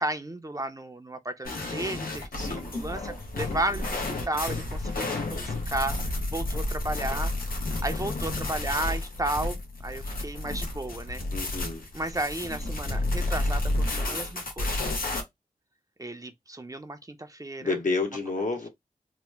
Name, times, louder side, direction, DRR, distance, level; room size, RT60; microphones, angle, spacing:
voice 1, 0.0-7.3 7.8-11.2 11.9-14.9 16.0-17.8, right 1 dB, 25° right, 0.6 m, -33 dB
sound 1, 1.4-15.2, left 2 dB, 90° left, 0.9 m, -31 dB
voice 2, 2.4-2.8 3.5-3.6 11.3-11.8 17.6-18.7, left 3 dB, 60° left, 1.0 m, -30 dB
3.0 x 2.1 x 3.3 m
cardioid pair, 45°, 15 cm